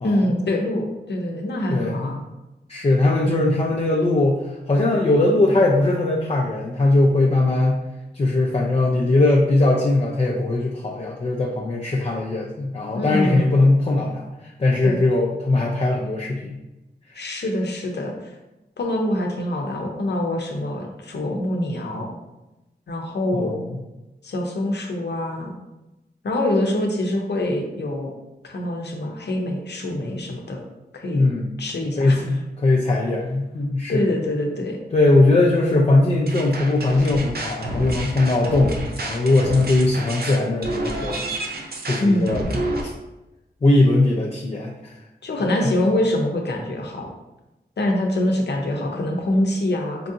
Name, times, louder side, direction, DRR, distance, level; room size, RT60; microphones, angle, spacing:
voice 1, 0.0-2.2 3.2-3.3 12.9-13.5 14.8-15.0 17.1-18.3 18.8-22.1 22.9-23.7 24.2-25.5 26.2-28.1 28.4-30.6 30.9-31.3 31.6-32.4 33.9-34.8 42.0-42.4 45.2-47.1 47.8-50.1, left 1 dB, 75° left, 1 dB, 0.6 m, -24 dB
voice 2, 1.7-2.2 2.7-4.4 4.7-7.8 8.1-14.2 14.6-16.6 23.3-23.5 31.1-31.5 32.0-34.0 34.9-41.2 41.8-42.5 42.8-42.9 43.6-44.7 45.6-45.7, left 2 dB, 35° left, -3 dB, 0.4 m, -20 dB
sound 1, 36.3-42.8, right 1 dB, 65° right, 0.6 m, -29 dB
4.5 x 2.5 x 2.6 m, 1.0 s
wide cardioid pair, 100°, 18 cm